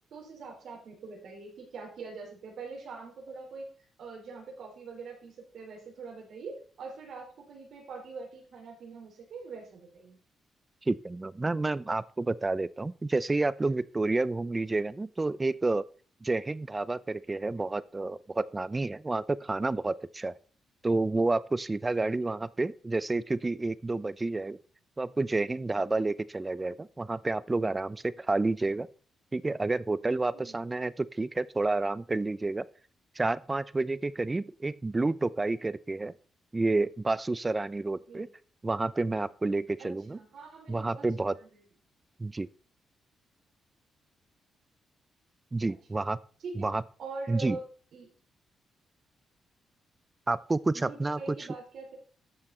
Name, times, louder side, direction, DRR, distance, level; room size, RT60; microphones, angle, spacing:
voice 1, 0.1-3.7 4.0-10.2 22.0-22.1 30.3-30.6 38.1-38.3 39.8-41.6 46.4-46.7 47.0-47.6 47.9-48.1 50.7-52.0, right 4 dB, 60° right, 0 dB, 4.4 m, -43 dB
voice 2, 10.9-15.9 16.2-20.3 20.8-24.6 25.0-28.9 29.3-32.6 33.2-36.1 36.5-38.3 38.6-40.2 40.7-41.3 42.2-42.5 45.5-46.2 46.6-46.8 47.3-47.6 50.3-51.4, right 2 dB, 15° right, 17 dB, 0.4 m, -29 dB
13.0 x 6.1 x 4.3 m, 0.41 s
cardioid pair, 145°, 0 cm